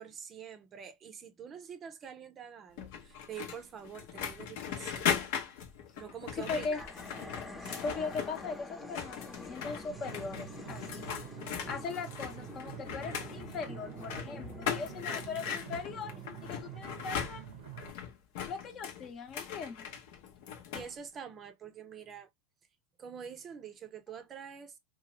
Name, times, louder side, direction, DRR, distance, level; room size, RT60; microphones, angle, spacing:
voice 1, 0.0-5.3 6.0-6.9 7.6-7.8 20.7-22.3 23.0-24.8, right 7 dB, 35° right, 0.5 m, -46 dB
sound 1, 2.8-8.5 8.8-20.9, left 7 dB, 70° left, 0.8 m, -39 dB
voice 2, 6.5-6.9 7.7-11.2 11.7-16.1 16.4-17.4 18.5-19.9, left 4 dB, 40° left, 0.8 m, -39 dB
sound 2, 6.8-18.1, left 2 dB, 10° left, 0.8 m, -49 dB
sound 3, 9.9-17.9, right 13 dB, 80° right, 0.7 m, -47 dB
2.9 x 2.3 x 2.9 m
supercardioid pair, 110°, 0 cm